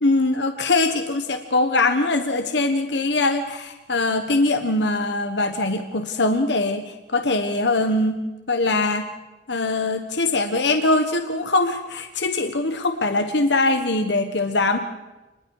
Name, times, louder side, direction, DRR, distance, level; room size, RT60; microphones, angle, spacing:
voice 1, 0.0-9.1 9.5-14.8, left 2 dB, 65° left, 7 dB, 1.4 m, -22 dB
29.5 x 21.0 x 4.9 m, 1.1 s
head